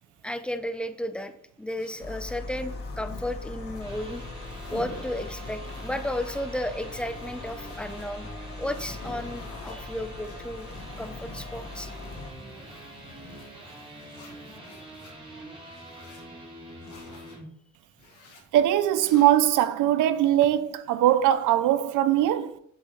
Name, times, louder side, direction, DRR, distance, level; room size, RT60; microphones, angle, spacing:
voice 1, 0.2-4.2 4.7-8.3 8.6-10.7 11.0-11.9, left 1 dB, 5° left, 0.7 m, -33 dB
sound 1, 1.8-3.9 4.1-6.4 6.8-8.0 8.4-9.7 10.2-13.5 14.0-15.1 15.6-16.2 16.8-17.4 17.9-18.4 18.9-19.4, left 3 dB, 80° left, 2.1 m, -47 dB
sound 2, 2.0-12.3, left 3 dB, 50° left, 1.6 m, -40 dB
sound 3, 3.6-17.5, right 1 dB, 15° right, 3.6 m, -45 dB
voice 2, 18.5-22.6, right 12 dB, 90° right, 0.7 m, -21 dB
7.8 x 7.1 x 3.2 m
cardioid pair, 90°, 30 cm